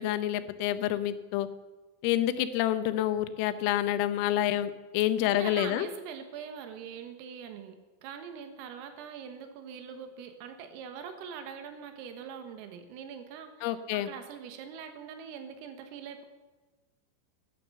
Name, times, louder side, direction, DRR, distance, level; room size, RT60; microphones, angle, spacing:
voice 1, 0.0-1.5 2.0-5.9 13.6-14.1, left 12 dB, 90° left, 11 dB, 3.5 m, -28 dB
voice 2, 5.2-7.8 8.0-16.3, right 7 dB, 85° right, 7 dB, 4.1 m, -43 dB
14.5 x 12.0 x 6.8 m, 1.3 s
omnidirectional pair, 5.9 m